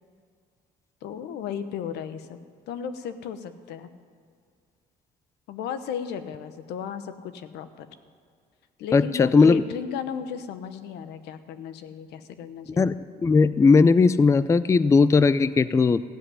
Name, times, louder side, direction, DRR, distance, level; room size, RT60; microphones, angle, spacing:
voice 1, 1.0-2.4 2.7-3.9 5.5-7.9 8.8-13.0, left 7 dB, 85° left, 11 dB, 1.0 m, -35 dB
voice 2, 8.9-9.6 12.8-16.1, left 4 dB, 15° left, 15 dB, 0.4 m, -18 dB
15.0 x 7.7 x 9.9 m, 2.2 s
cardioid pair, 110°, 17 cm